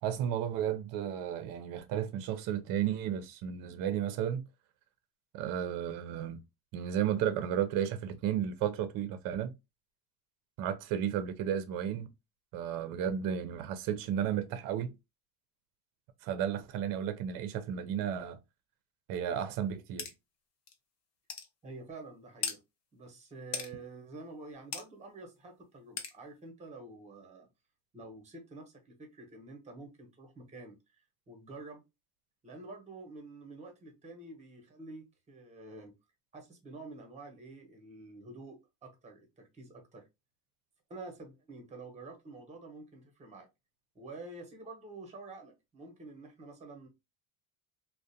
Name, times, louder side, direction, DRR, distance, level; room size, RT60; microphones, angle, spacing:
voice 1, 0.0-4.4 5.3-6.4 6.7-9.5 10.6-12.1 12.5-14.9 16.2-18.4 19.1-20.1, right 9 dB, 55° right, 0.5 m, -33 dB
sound 1, 20.0-20.1 20.7-20.8 21.3-21.5 22.4-22.6 23.5-23.7 24.7-24.9 26.0-26.1, left 6 dB, 40° left, 0.5 m, -36 dB
voice 2, 21.6-22.6 22.9-27.5 27.9-31.0 31.3-31.8 32.4-35.9 36.3-40.0 40.9-43.5 43.9-46.9, right 2 dB, 15° right, 0.8 m, -48 dB
2.4 x 2.1 x 2.6 m
cardioid pair, 125°, 42 cm